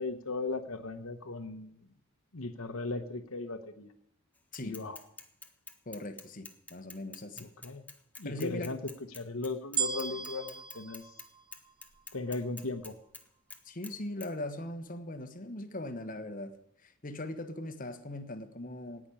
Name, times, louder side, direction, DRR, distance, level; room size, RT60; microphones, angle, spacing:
voice 1, 0.0-1.8 2.3-3.9 4.6-5.0 7.4-7.9 8.2-8.8 9.1-11.1 12.1-13.0, left 3 dB, 75° left, 1.1 m, -37 dB
Bicycle / Mechanisms, 4.5-11.3 11.5-13.2 13.5-13.9 14.2-14.3, left 3 dB, 5° left, 1.0 m, -48 dB
voice 2, 5.8-7.5 8.2-8.7 13.6-16.5 16.8-19.1, left 1 dB, 40° left, 1.2 m, -40 dB
sound 1, 9.8-12.2 12.8-12.9, right 7 dB, 20° right, 0.7 m, -37 dB
17.5 x 6.2 x 9.8 m
head